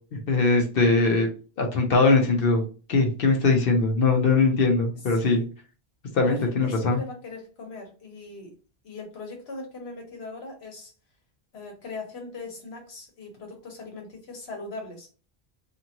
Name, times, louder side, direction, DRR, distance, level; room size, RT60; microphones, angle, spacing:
voice 1, 0.1-1.3 1.6-2.6 2.9-5.4 6.1-7.0, left 3 dB, 65° left, 3 dB, 0.8 m, -21 dB
voice 2, 6.2-8.5 8.8-10.9 11.5-15.1, left 3 dB, 80° left, 1 dB, 1.2 m, -40 dB
2.6 x 2.5 x 2.8 m, 0.36 s
omnidirectional pair, 1.1 m